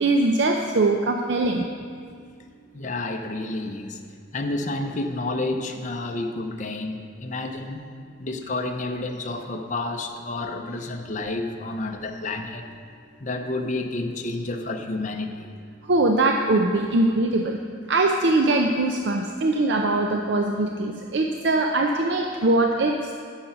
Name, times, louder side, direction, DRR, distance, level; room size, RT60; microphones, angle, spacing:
voice 1, 0.0-1.7 15.9-17.6 17.9-23.1, right 2 dB, 60° right, 3 dB, 0.5 m, -22 dB
voice 2, 2.7-4.0 4.3-7.9 8.2-12.7 13.2-15.5, left 2 dB, 40° left, 4 dB, 0.6 m, -30 dB
10.0 x 6.6 x 5.9 m, 2.1 s
head